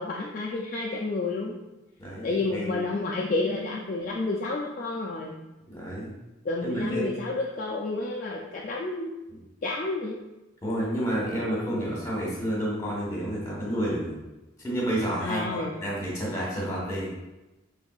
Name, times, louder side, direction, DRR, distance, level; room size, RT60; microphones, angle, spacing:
voice 1, 0.0-1.6 2.2-5.4 6.4-9.1 9.6-10.2 15.2-15.7, left 3 dB, 40° left, -3 dB, 0.3 m, -30 dB
voice 2, 2.0-2.7 5.7-6.1 6.6-7.1 10.6-14.2 14.6-17.1, equal, 15° left, -5 dB, 1.2 m, -30 dB
5.3 x 3.4 x 2.4 m, 1.0 s
head